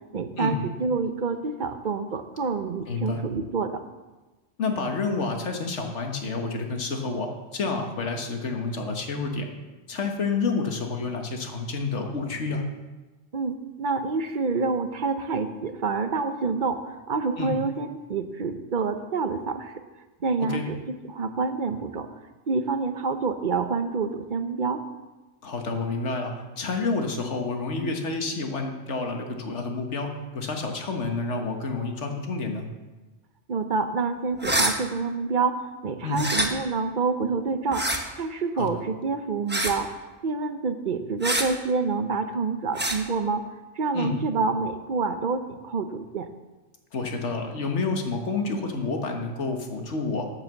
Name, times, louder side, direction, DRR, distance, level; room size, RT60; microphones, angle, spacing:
voice 1, 0.1-3.8 13.3-19.7 20.2-22.1 22.5-24.8 33.5-37.9 38.2-39.9 40.2-43.5 43.7-46.3, right 4 dB, 50° right, 9 dB, 0.8 m, -27 dB
voice 2, 2.9-3.2 4.6-9.5 9.9-12.6 17.4-17.5 20.5-20.7 25.4-32.6 36.0-36.2 38.6-38.7 43.9-44.2 46.9-50.2, left 4 dB, 70° left, 3 dB, 1.6 m, -29 dB
sound 1, 34.4-34.7 36.1-36.5 37.7-38.0 39.5-39.8 41.2-41.5 42.8-43.0, right 1 dB, 10° right, 0.9 m, -25 dB
9.3 x 7.3 x 7.1 m, 1.2 s
omnidirectional pair, 1.3 m